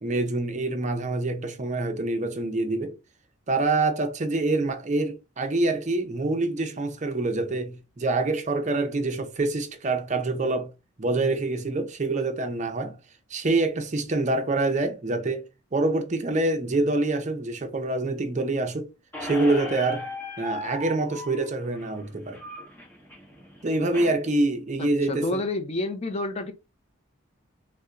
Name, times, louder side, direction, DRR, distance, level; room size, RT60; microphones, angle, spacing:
voice 1, 0.0-3.0 3.5-10.7 11.0-13.0 13.3-15.4 15.7-18.9 19.2-20.1 20.4-22.4 23.6-25.4, right 2 dB, 35° right, 0.5 m, -26 dB
Squeak, 19.1-24.1, left 2 dB, 10° left, 1.0 m, -37 dB
voice 2, 24.8-26.5, left 2 dB, 30° left, 0.5 m, -29 dB
4.1 x 2.1 x 2.4 m
head